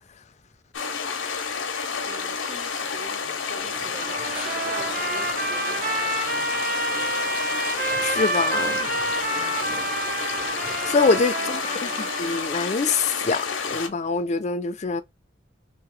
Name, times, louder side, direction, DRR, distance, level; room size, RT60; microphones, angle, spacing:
sound 1, 0.7-13.9, left 5 dB, 90° left, 0.7 m, -30 dB
voice 1, 2.0-6.6 11.3-12.0, right 2 dB, 80° right, 1.9 m, -42 dB
sound 2, 3.6-11.3, equal, 5° right, 0.7 m, -43 dB
Trumpet, 4.0-12.8, right 2 dB, 50° right, 0.6 m, -29 dB
voice 2, 8.0-8.9 10.8-15.0, left 4 dB, 35° left, 0.4 m, -24 dB
2.9 x 2.8 x 3.1 m
head